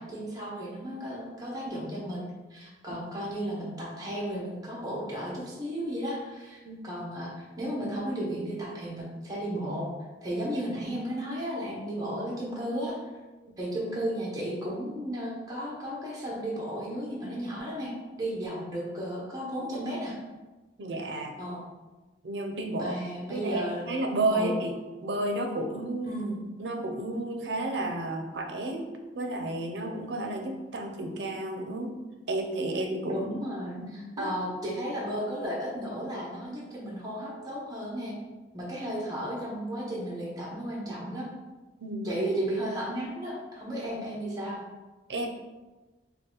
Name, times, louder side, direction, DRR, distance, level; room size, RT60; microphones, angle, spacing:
voice 1, 0.0-6.6 6.8-9.9 10.2-12.9 13.6-20.2 21.4-21.6 22.7-24.0 24.3-24.6 26.0-26.4 33.1-38.1 38.5-41.3 42.0-44.6, right 1 dB, 20° right, -5 dB, 0.8 m, -34 dB
voice 2, 20.8-21.4 22.2-22.9 23.3-24.7 25.0-26.1 26.6-28.8 29.2-31.9 32.3-33.3 33.8-34.3 41.8-42.1 43.9-44.0 45.1-45.3, right 1 dB, 70° right, 3 dB, 0.5 m, -32 dB
3.9 x 2.3 x 3.8 m, 1.2 s
head